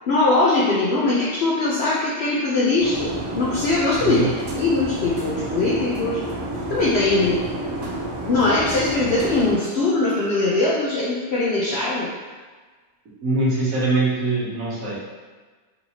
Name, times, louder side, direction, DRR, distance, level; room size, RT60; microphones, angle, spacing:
voice 1, 0.1-4.2 4.5-6.2 6.7-7.5 8.3-12.1, left 2 dB, 70° left, -5 dB, 0.6 m, -21 dB
sound 1, 2.8-9.5, right 1 dB, 85° right, 1.3 m, -29 dB
voice 2, 13.2-14.9, right 2 dB, 65° right, -7 dB, 1.4 m, -22 dB
3.9 x 2.7 x 2.8 m, 1.4 s
omnidirectional pair, 1.6 m